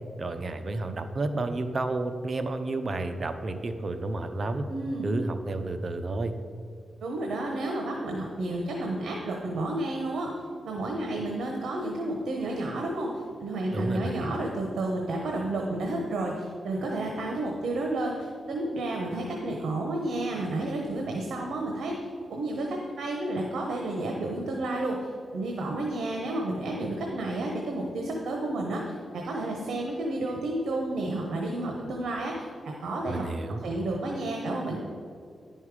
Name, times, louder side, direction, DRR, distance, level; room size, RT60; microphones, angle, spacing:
voice 1, 0.2-4.7 5.0-6.3 13.7-14.2 33.1-33.7, right 2 dB, 45° right, 8 dB, 0.7 m, -31 dB
voice 2, 4.7-5.1 7.0-10.3 10.6-22.0 22.3-33.2 33.6-34.8, right 2 dB, 80° right, 0 dB, 1.0 m, -31 dB
11.0 x 5.6 x 4.8 m, 2.2 s
cardioid pair, 75°, 0 cm